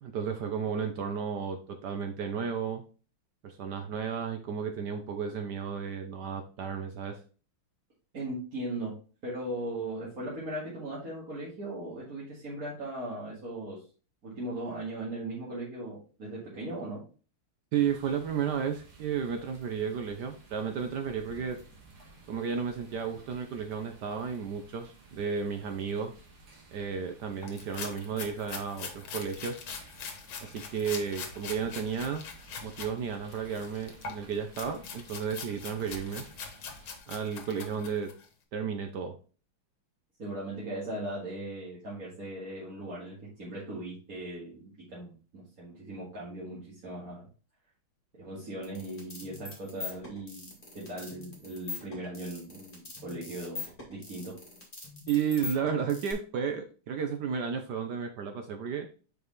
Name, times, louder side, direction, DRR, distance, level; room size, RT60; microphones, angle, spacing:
voice 1, 0.0-2.8 3.4-7.2 17.7-21.6 22.3-26.1 26.7-29.6 30.4-32.2 32.6-36.2 37.1-38.1 38.5-39.2 55.1-58.9, right 7 dB, 65° right, 6 dB, 1.1 m, -33 dB
voice 2, 8.1-9.0 9.2-13.8 14.2-17.0 40.2-47.3 48.1-54.4, right 1 dB, 45° right, -8 dB, 2.3 m, -38 dB
sound 1, 17.7-37.0, right 3 dB, 85° right, 2.5 m, -55 dB
sound 2, 27.4-32.9 33.3-38.3, left 5 dB, 75° left, 1.8 m, -43 dB
sound 3, 48.6-56.1, left 4 dB, 20° left, 1.9 m, -42 dB
5.3 x 4.8 x 3.8 m, 0.37 s
omnidirectional pair, 2.3 m